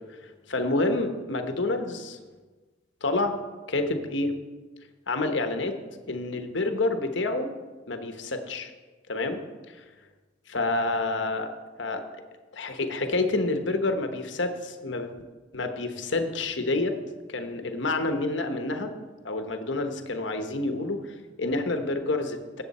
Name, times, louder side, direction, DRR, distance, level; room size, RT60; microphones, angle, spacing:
voice 1, 0.2-2.2 3.0-3.4 3.7-4.3 5.1-5.7 6.1-7.5 7.9-8.7 9.1-9.4 9.7-9.8 10.5-11.5 11.8-12.0 12.5-15.1 15.5-17.0 17.3-18.9 19.2-22.4, left 2 dB, 75° left, 7 dB, 1.1 m, -28 dB
17.5 x 7.5 x 4.2 m, 1.3 s
head